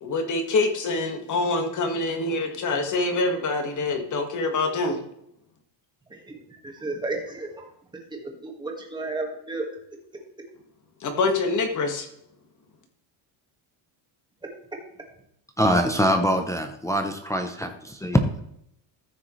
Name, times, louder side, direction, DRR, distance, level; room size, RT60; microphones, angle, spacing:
voice 1, 0.0-5.0 11.0-12.1, left 3 dB, 35° left, 5 dB, 1.6 m, -25 dB
voice 2, 6.8-7.7 8.1-9.7, right 2 dB, 10° right, 0 dB, 1.6 m, -32 dB
voice 3, 15.6-18.4, equal, 5° left, 4 dB, 0.5 m, -23 dB
14.0 x 6.3 x 3.1 m, 0.75 s
cardioid pair, 165°, 49 cm